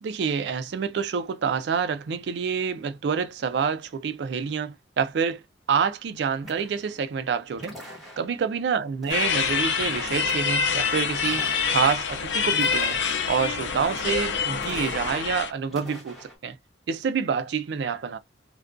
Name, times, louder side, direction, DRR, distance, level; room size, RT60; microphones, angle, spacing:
voice 1, 0.0-5.4 5.7-7.7 8.2-13.0 13.3-16.6 16.9-18.2, right 6 dB, 65° right, 0.3 m, -27 dB
sound 1, 6.4-7.1 7.6-8.5 9.0-9.6 9.9-10.7 11.2-11.9 12.5-13.4 13.7-14.3 14.6-15.4 15.6-16.4, equal, ahead, 1.0 m, -44 dB
sound 2, 9.1-15.5, left 6 dB, 90° left, 0.5 m, -26 dB
2.5 x 2.2 x 2.4 m
head